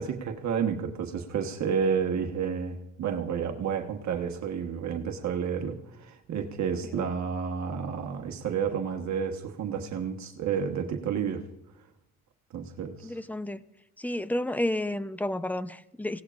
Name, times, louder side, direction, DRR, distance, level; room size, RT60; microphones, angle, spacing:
voice 1, 0.0-11.4 12.5-13.1, right 7 dB, 65° right, 3 dB, 1.3 m, -30 dB
voice 2, 13.0-13.6 14.0-16.2, left 1 dB, 5° left, 13 dB, 0.7 m, -31 dB
24.5 x 17.5 x 2.5 m, 0.87 s
cardioid pair, 90°, 30 cm